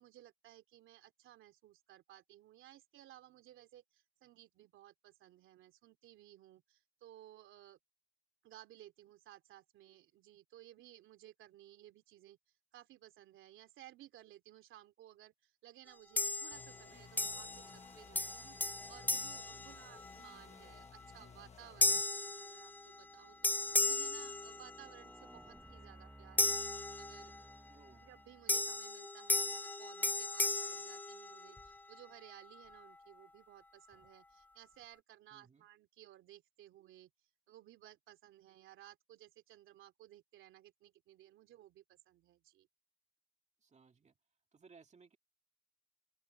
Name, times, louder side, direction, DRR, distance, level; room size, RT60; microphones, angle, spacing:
voice 1, 0.0-7.8 8.4-12.4 12.7-18.6 18.9-26.6 27.0-27.3 28.0-37.1 37.5-42.7, right 13 dB, 85° right, 2.9 m, -58 dB
sound 1, 16.2-16.8 17.2-17.9 18.2-20.3 20.8-21.1 21.8-23.1 23.4-25.1 26.4-27.5 28.5-31.7, left 2 dB, 10° left, 0.4 m, -36 dB
sound 2, 16.5-22.0, left 5 dB, 35° left, 1.6 m, -57 dB
voice 2, 19.5-19.9 27.7-28.0 35.3-35.7 43.6-44.1 44.5-45.2, right 5 dB, 35° right, 2.2 m, -62 dB
sound 3, 22.0-28.8, right 1 dB, 10° right, 1.4 m, -60 dB
open air
cardioid pair, 90°, 20 cm